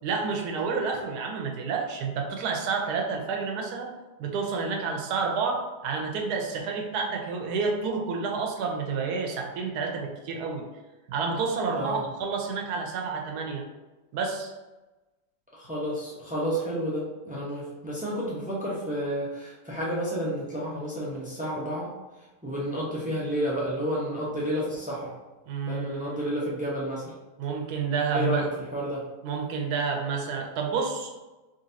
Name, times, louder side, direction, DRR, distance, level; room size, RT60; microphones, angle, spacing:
voice 1, 0.0-3.9 4.2-10.6 11.1-13.6 14.1-14.5 25.5-26.3 27.4-28.5 29.2-31.2, right 5 dB, 75° right, 1 dB, 1.2 m, -29 dB
voice 2, 11.7-12.0 15.5-21.9 22.4-25.1 25.7-27.1 28.1-29.0, equal, 15° right, -5 dB, 0.3 m, -31 dB
3.9 x 3.5 x 2.7 m, 1.1 s
omnidirectional pair, 1.8 m